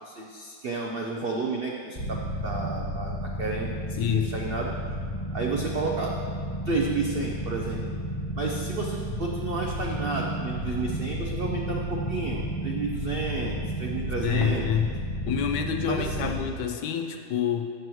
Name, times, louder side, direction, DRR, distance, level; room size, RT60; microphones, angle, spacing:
voice 1, 0.0-4.7 5.3-6.1 6.7-7.8 8.4-14.7 15.8-16.3, right 3 dB, 70° right, -1 dB, 0.5 m, -31 dB
sound 1, 2.0-16.4, equal, 30° left, 0.5 m, -32 dB
voice 2, 4.0-4.3 14.2-14.9 15.3-17.7, left 8 dB, 75° left, 5 dB, 1.2 m, -27 dB
12.5 x 7.6 x 3.1 m, 2.1 s
omnidirectional pair, 1.9 m